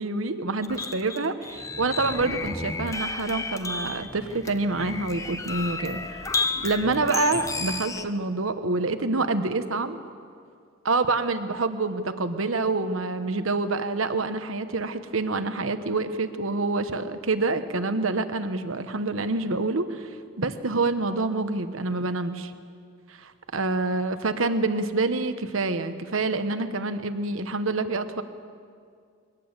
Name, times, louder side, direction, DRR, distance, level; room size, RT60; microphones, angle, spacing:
voice 1, 0.0-6.3 6.6-10.0 10.8-22.5 23.2-28.2, right 3 dB, 85° right, 10 dB, 1.2 m, -27 dB
sound 1, 0.6-8.0, left 3 dB, 15° left, 0.7 m, -32 dB
22.0 x 18.0 x 8.2 m, 2.2 s
head